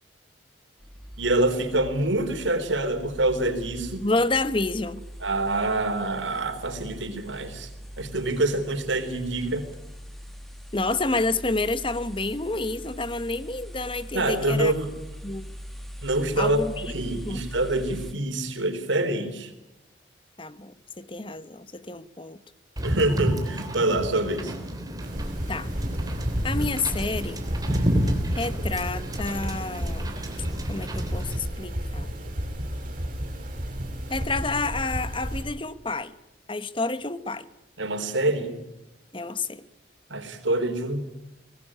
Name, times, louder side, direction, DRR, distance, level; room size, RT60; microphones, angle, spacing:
sound 1, 0.8-18.1, equal, ahead, 2.0 m, -42 dB
voice 1, 1.2-4.1 5.2-7.7 8.0-9.7 14.1-14.9 16.0-19.5 22.8-24.5 37.8-38.6 40.1-41.0, right 2 dB, 90° right, 7 dB, 3.9 m, -26 dB
voice 2, 4.0-5.1 10.7-14.7 15.2-15.5 16.4-16.8 17.2-17.4 20.4-22.4 25.5-25.7 26.4-27.4 28.3-30.2 30.7-32.1 34.1-36.1 36.5-37.5 39.1-39.6, left 3 dB, 30° left, 14 dB, 1.1 m, -29 dB
Wind / Boat Water vehicle, 22.8-31.4, equal, 20° right, 3.2 m, -30 dB
sound 2, 25.0-35.4, equal, 45° right, 6.7 m, -32 dB
24.0 x 19.0 x 10.0 m, 0.93 s
head